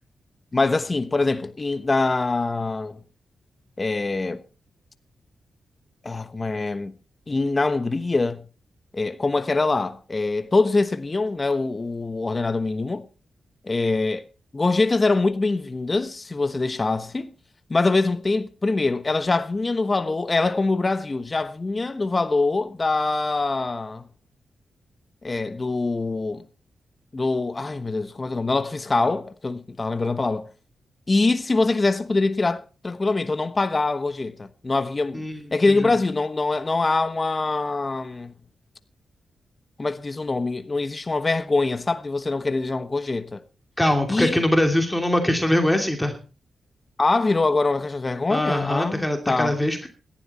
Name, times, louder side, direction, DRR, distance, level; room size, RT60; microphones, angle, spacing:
voice 1, 0.5-3.0 3.8-4.4 6.0-6.9 7.3-8.4 8.9-13.0 13.6-14.2 14.5-17.3 17.7-24.0 25.2-26.4 27.1-30.5 31.1-35.2 35.5-38.3 39.8-43.4 44.1-44.4 47.0-49.6, left 3 dB, 35° left, 1.1 m, -24 dB
voice 2, 43.8-46.2 48.3-49.9, left 1 dB, 10° left, 2.7 m, -22 dB
17.0 x 12.0 x 4.3 m
supercardioid pair, 50°, 0 cm